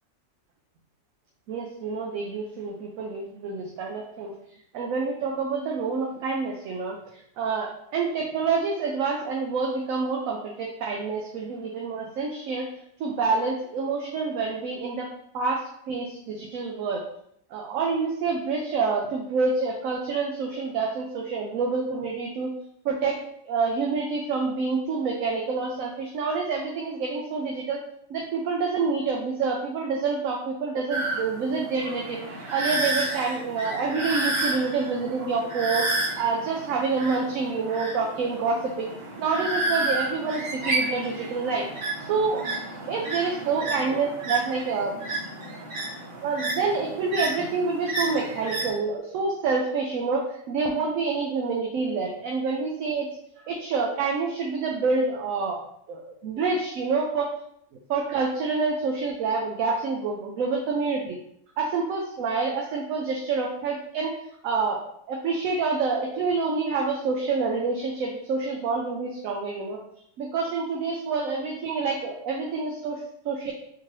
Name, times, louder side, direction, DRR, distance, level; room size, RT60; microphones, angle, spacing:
voice 1, 1.5-4.3 4.7-7.0 7.4-12.7 13.0-15.1 15.3-15.6 15.9-17.0 17.5-22.5 22.8-23.2 23.4-27.8 28.1-32.2 32.5-38.9 39.2-41.7 42.0-42.5 42.9-44.9 46.2-53.1 53.4-55.6 55.9-57.3 57.9-61.2 61.6-64.1 64.4-64.8 65.1-69.8 70.2-73.5, right 4 dB, 75° right, -1 dB, 1.0 m, -27 dB
sound 1, 30.9-48.7, right 2 dB, 55° right, 1.4 m, -31 dB
3.6 x 2.8 x 3.0 m, 0.70 s
omnidirectional pair, 1.5 m